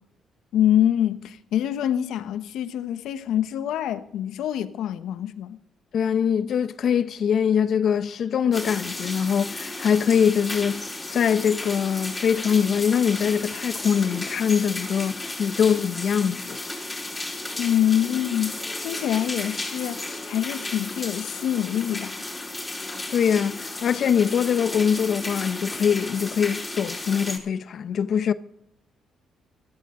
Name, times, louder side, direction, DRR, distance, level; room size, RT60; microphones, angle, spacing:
voice 1, 0.5-5.6 17.6-22.3, left 11 dB, 80° left, 1.1 m, -25 dB
voice 2, 5.9-10.8 11.1-16.6 23.1-28.3, left 7 dB, 60° left, 0.7 m, -23 dB
sound 1, 8.5-27.4, left 2 dB, 10° left, 4.4 m, -34 dB
18.5 x 13.5 x 3.8 m
cardioid pair, 90°, 0 cm